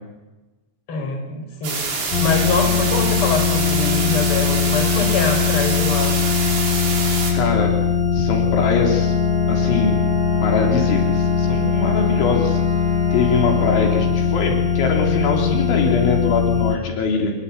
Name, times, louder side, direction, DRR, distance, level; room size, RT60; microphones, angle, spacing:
voice 1, 0.9-6.2, left 4 dB, 30° left, 4 dB, 5.1 m, -24 dB
sound 1, 1.6-7.3, right 4 dB, 75° right, 7.6 m, -25 dB
sound 2, 2.1-16.8, left 7 dB, 45° left, 3.0 m, -20 dB
voice 2, 7.3-7.7 8.1-9.1 9.5-10.0 10.4-12.6 13.1-17.3, left 5 dB, 80° left, 1 dB, 5.9 m, -22 dB
Wind instrument woodwind instrument, 8.6-14.3, equal, 30° right, 3.9 m, -30 dB
25.5 x 21.0 x 8.5 m, 1.1 s
omnidirectional pair, 5.3 m